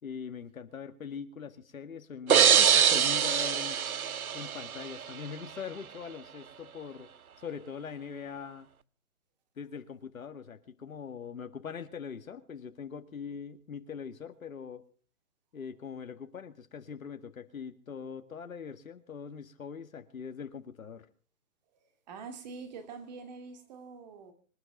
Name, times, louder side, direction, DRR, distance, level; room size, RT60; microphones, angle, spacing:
voice 1, 0.0-3.8 4.3-7.1 7.4-8.7 9.6-14.9 15.5-21.1, left 6 dB, 75° left, 1.9 m, -42 dB
sound 1, 2.3-5.1, right 8 dB, 85° right, 0.9 m, -24 dB
voice 2, 22.1-24.3, right 5 dB, 30° right, 2.2 m, -45 dB
26.0 x 10.0 x 4.9 m
hypercardioid pair, 155°, 42 cm